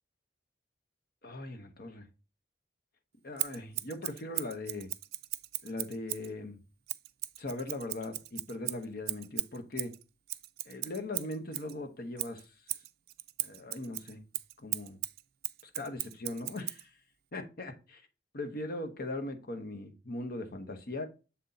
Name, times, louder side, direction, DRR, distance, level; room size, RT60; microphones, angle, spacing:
voice 1, 1.2-2.0 3.2-4.9 5.6-6.6 7.4-9.9 10.7-12.4 13.4-14.2 14.6-15.0 15.7-16.9 17.3-18.0 18.3-21.1, left 2 dB, 60° left, 1.1 m, -39 dB
Scissors, 3.4-6.3 6.9-11.7 12.2-16.8, right 17 dB, 60° right, 0.4 m, -38 dB
7.2 x 4.0 x 4.1 m
head